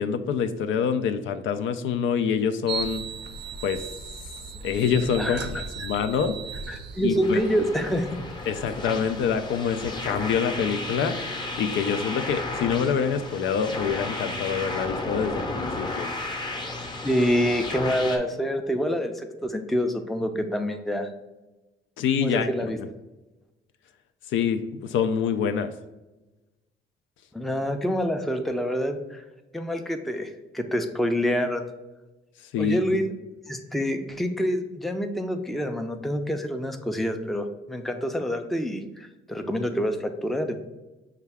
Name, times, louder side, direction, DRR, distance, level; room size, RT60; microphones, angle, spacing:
voice 1, 0.0-3.0 3.6-3.8 4.6-6.3 7.0-7.4 8.5-11.2 11.6-16.1 22.0-22.5 22.8-22.9 24.3-25.7 32.5-33.0, left 7 dB, 75° left, 9 dB, 0.4 m, -26 dB
sound 1, 2.7-10.3, right 5 dB, 60° right, 0.5 m, -38 dB
voice 2, 5.2-5.9 6.7-8.3 17.0-21.1 22.2-22.8 27.3-29.2 29.5-31.6 32.6-33.1 33.5-40.6, equal, ahead, 5 dB, 0.4 m, -27 dB
sound 2, 7.2-18.2, left 2 dB, 20° left, 0.7 m, -33 dB
5.6 x 2.3 x 3.4 m, 1.1 s
cardioid pair, 90°, 20 cm